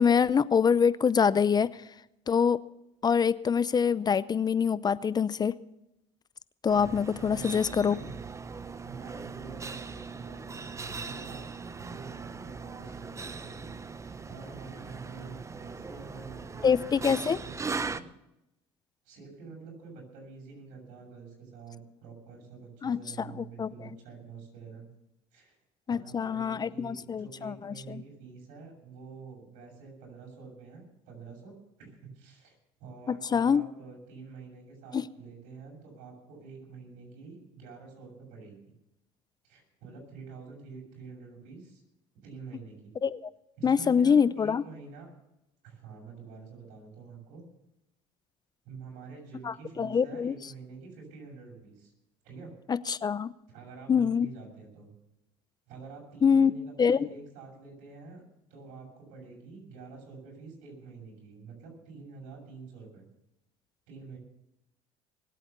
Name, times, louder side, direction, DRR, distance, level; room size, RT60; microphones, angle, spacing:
voice 1, 0.0-1.7 2.3-2.6 3.0-5.5 6.6-8.0 16.6-17.4 22.8-23.7 25.9-28.0 33.3-33.6 34.9-35.0 43.0-43.2 43.6-44.6 49.4-50.4 52.7-53.3 53.9-54.3 56.2-56.5 56.8-57.1, left 6 dB, 30° left, 17 dB, 0.6 m, -25 dB
sound 1, 6.7-18.0, right 4 dB, 20° right, 0.8 m, -39 dB
voice 2, 7.2-8.3 8.8-11.5 11.8-13.7 14.0-18.1 19.0-24.9 25.3-25.6 25.9-38.6 39.4-41.8 42.2-42.9 43.6-45.1 45.6-47.4 48.6-51.9 52.2-52.5 53.5-54.9 55.7-58.2 58.5-63.1 63.9-64.2, right 4 dB, 75° right, 1 dB, 7.0 m, -47 dB
21.5 x 8.4 x 6.9 m, 0.86 s
supercardioid pair, 80°, 14 cm